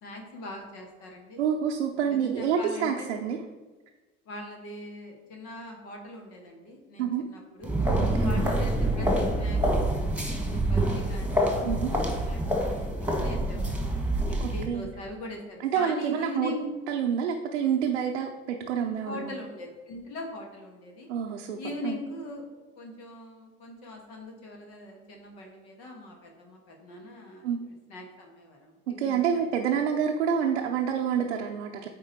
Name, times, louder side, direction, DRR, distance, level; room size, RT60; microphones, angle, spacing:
voice 1, 0.0-1.4 2.0-3.1 4.2-7.7 8.2-9.8 10.1-13.8 14.3-16.6 19.0-21.1 21.6-22.5 22.8-27.5 27.9-29.4, left 2 dB, 70° left, 1 dB, 1.6 m, -41 dB
voice 2, 1.4-3.4 7.0-7.2 8.0-8.3 11.6-11.9 14.4-14.9 15.6-16.5 16.9-19.3 21.1-21.6 21.8-22.0 27.4-27.6 28.9-31.9, right 7 dB, 90° right, 1 dB, 0.6 m, -28 dB
sound 1, 7.6-14.7, right 1 dB, 5° right, 1.5 m, -26 dB
8.8 x 3.7 x 4.5 m, 1.3 s
hypercardioid pair, 55°, 33 cm